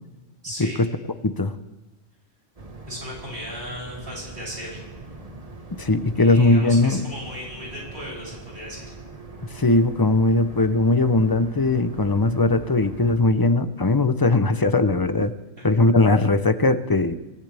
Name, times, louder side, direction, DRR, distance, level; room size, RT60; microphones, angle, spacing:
voice 1, 0.4-0.8 2.9-4.8 6.2-8.8, equal, 50° right, -5 dB, 7.6 m, -36 dB
sound 1, 2.6-13.1, right 3 dB, 35° right, 1.6 m, -42 dB
voice 2, 5.7-7.0 9.5-15.3 15.6-17.1, left 2 dB, 25° left, 11 dB, 0.6 m, -19 dB
27.0 x 15.5 x 3.5 m, 1.0 s
omnidirectional pair, 1.2 m